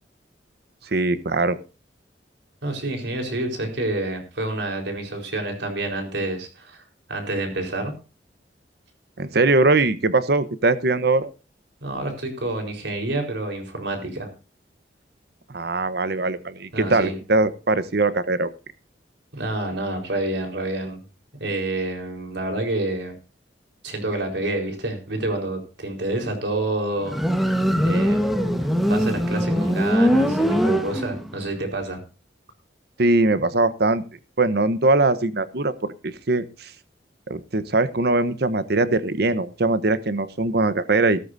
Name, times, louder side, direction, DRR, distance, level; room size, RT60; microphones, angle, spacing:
voice 1, 0.9-1.6 9.2-11.3 15.5-18.5 33.0-34.0 34.4-35.7 36.0-36.7 37.3-41.2, right 2 dB, 65° right, 13 dB, 1.0 m, -21 dB
voice 2, 2.6-7.9 11.8-14.3 16.7-17.1 19.3-21.0 21.4-23.2 23.8-32.0, right 2 dB, 80° right, 4 dB, 4.4 m, -28 dB
Motorcycle, 27.0-31.4, equal, ahead, 1.4 m, -21 dB
15.5 x 13.5 x 2.7 m, 0.33 s
head